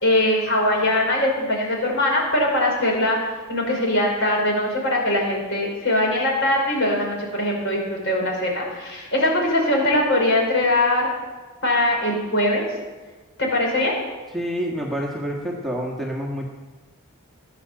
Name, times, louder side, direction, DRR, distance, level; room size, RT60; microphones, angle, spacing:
voice 1, 0.0-3.2 3.5-11.1 11.6-12.6 13.4-13.9, left 1 dB, 55° left, -1 dB, 5.1 m, -21 dB
voice 2, 14.3-16.5, equal, ahead, -2 dB, 1.6 m, -27 dB
17.0 x 10.5 x 7.6 m, 1.3 s
head